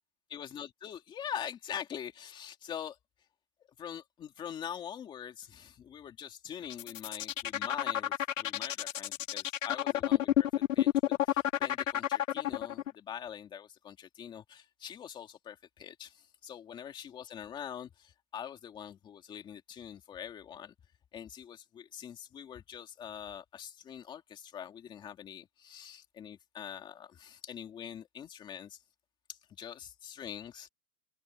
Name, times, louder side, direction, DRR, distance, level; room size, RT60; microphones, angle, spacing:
voice 1, 0.3-3.0 3.8-10.5 10.7-20.7 21.1-28.8 29.3-30.7, left 9 dB, 10° left, 2.6 m, -44 dB
sound 1, 6.6-12.9, left 12 dB, 60° left, 1.4 m, -29 dB
hypercardioid pair, 175°, 45 cm